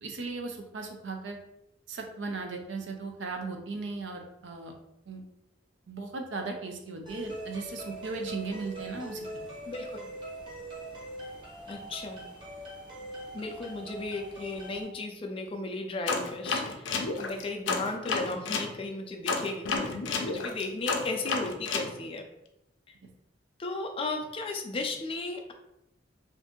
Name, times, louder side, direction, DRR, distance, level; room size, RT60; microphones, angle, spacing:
voice 1, 0.0-1.4 1.9-4.7 5.1-5.2 5.9-9.3, right 3 dB, 75° right, 4 dB, 0.5 m, -37 dB
sound 1, 7.1-14.8, right 1 dB, 25° right, 0.9 m, -42 dB
voice 2, 9.7-10.1 11.7-12.2 13.3-22.3 23.6-25.5, left 2 dB, 30° left, 4 dB, 0.4 m, -35 dB
sound 2, 16.1-18.7 19.3-21.9, left 4 dB, 85° left, 0.5 m, -31 dB
2.6 x 2.6 x 3.6 m, 0.85 s
head